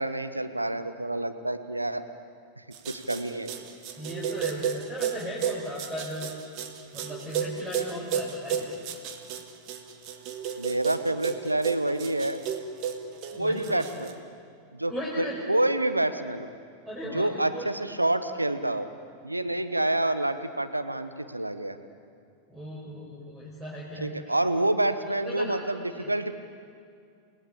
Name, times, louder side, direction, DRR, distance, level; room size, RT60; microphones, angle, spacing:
voice 1, 0.0-2.1 2.6-3.5 10.6-12.4 13.3-14.1 14.7-16.5 17.0-18.9 19.2-21.8 24.0-26.3, right 1 dB, 85° right, 10 dB, 1.2 m, -28 dB
sound 1, 2.7-14.1, right 8 dB, 40° right, 1.9 m, -33 dB
voice 2, 4.0-6.3 6.9-8.7 13.3-13.8 14.9-15.4 16.9-17.7 22.5-24.3 25.3-25.6 25.9-26.1, equal, 15° right, -5 dB, 5.2 m, -37 dB
29.5 x 18.5 x 8.6 m, 2.4 s
figure-of-eight pair, 90°, 0 cm